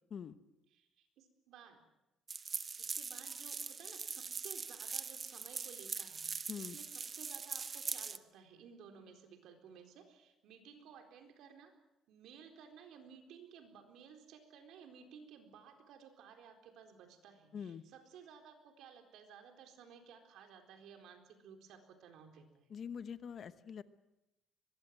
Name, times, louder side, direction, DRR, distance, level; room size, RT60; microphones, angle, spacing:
voice 1, 0.7-1.8 2.8-6.3 6.6-11.7 12.1-22.7, right 7 dB, 75° right, 5 dB, 4.1 m, -56 dB
sound 1, 2.3-8.2, right 5 dB, 30° right, 1.0 m, -42 dB
voice 2, 17.5-17.8 22.7-23.8, left 7 dB, 45° left, 13 dB, 1.1 m, -44 dB
23.0 x 21.5 x 7.6 m, 0.93 s
cardioid pair, 135°, 0 cm